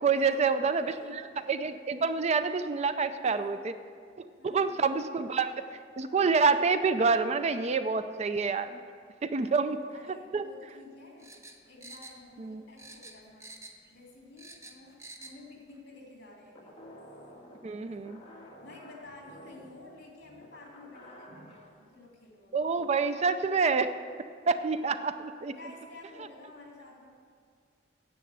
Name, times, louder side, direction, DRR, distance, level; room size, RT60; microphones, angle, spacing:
voice 1, 0.0-3.8 4.2-5.5 6.0-8.8 9.2-9.8 10.3-10.4 12.4-12.6 17.6-18.2 22.5-23.9 24.5-25.5, right 4 dB, 35° right, 11 dB, 0.4 m, -27 dB
voice 2, 0.7-1.2 3.2-3.6 4.4-4.8 9.3-13.5 13.9-16.8 17.8-18.1 18.6-22.7 25.5-27.1, left 2 dB, 60° left, -2 dB, 3.1 m, -51 dB
sound 1, 11.2-12.5 12.8-13.9 14.2-15.4 15.7-15.8, right 2 dB, 15° right, 0.9 m, -48 dB
sound 2, 16.5-21.7, equal, 35° left, 1.9 m, -51 dB
9.9 x 7.7 x 7.8 m, 2.2 s
head